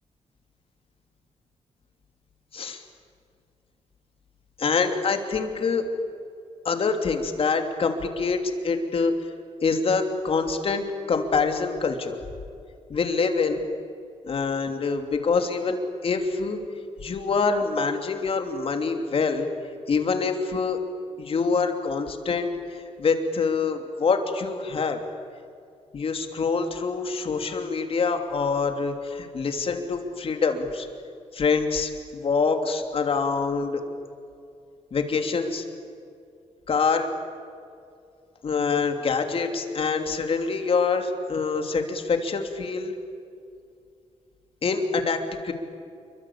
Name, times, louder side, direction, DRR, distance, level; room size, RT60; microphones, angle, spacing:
voice 1, 4.6-5.9 6.6-9.1 9.6-12.2 12.9-13.7 14.2-15.8 16.0-16.6 17.0-19.5 19.9-20.8 21.2-25.0 25.9-30.9 31.3-33.8 34.9-35.6 36.7-37.1 38.4-42.9 44.6-45.5, left 4 dB, 50° left, 5 dB, 3.1 m, -25 dB
28.0 x 24.0 x 8.7 m, 2.4 s
cardioid pair, 120°, 12 cm